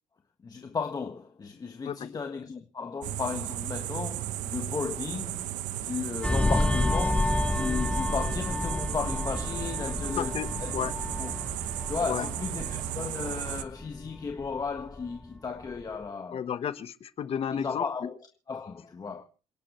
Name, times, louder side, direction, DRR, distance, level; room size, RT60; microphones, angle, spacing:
voice 1, 0.4-5.4 5.8-10.3 10.6-10.7 11.2-11.3 11.9-16.4 17.5-18.2 18.5-19.2, left 5 dB, 30° left, 1.5 m, -35 dB
sound 1, 3.0-13.6, right 13 dB, 90° right, 1.0 m, -35 dB
sound 2, 6.2-15.3 15.6-15.9, left 2 dB, 10° left, 1.4 m, -30 dB
voice 2, 10.1-10.9 12.1-12.3 16.3-17.9, left 8 dB, 50° left, 1.2 m, -32 dB
28.0 x 11.5 x 3.2 m
cardioid pair, 110°, 13 cm